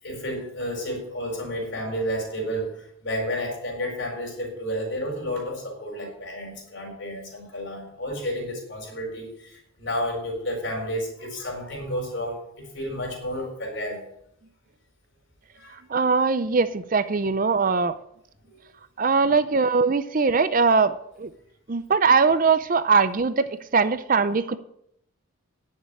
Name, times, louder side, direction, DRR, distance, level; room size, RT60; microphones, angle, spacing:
voice 1, 0.0-14.1 15.6-15.8 18.5-18.6 19.2-19.3, equal, 55° left, 1 dB, 4.4 m, -31 dB
voice 2, 15.9-17.9 19.0-21.3 21.7-23.4 23.7-24.6, right 4 dB, 40° right, 13 dB, 0.5 m, -21 dB
10.5 x 6.7 x 8.7 m, 0.74 s
head